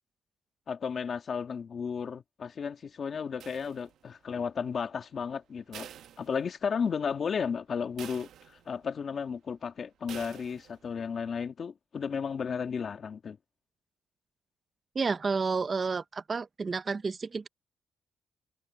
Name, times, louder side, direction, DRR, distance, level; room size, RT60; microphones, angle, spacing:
voice 1, 0.7-5.9 6.2-13.4, left 6 dB, 40° left, 2.0 m, -34 dB
sound 1, 3.4-4.2 5.7-6.9 7.3-7.4 8.0-8.9 10.1-10.9, right 10 dB, 70° right, 1.1 m, -48 dB
voice 2, 15.0-17.5, right 4 dB, 30° right, 0.6 m, -30 dB
cardioid pair, 140°, 0 cm